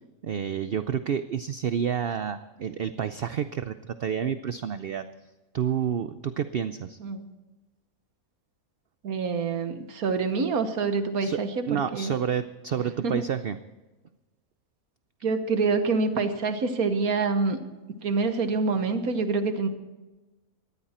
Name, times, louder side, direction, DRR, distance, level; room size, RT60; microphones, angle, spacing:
voice 1, 0.2-5.0 5.5-7.0 11.2-11.4 11.7-13.6, right 8 dB, 55° right, 11 dB, 0.7 m, -29 dB
voice 2, 9.0-12.1 13.0-13.2 15.2-17.6 18.0-19.7, right 4 dB, 85° right, 8 dB, 1.7 m, -26 dB
19.5 x 14.0 x 4.3 m, 1.1 s
omnidirectional pair, 1.5 m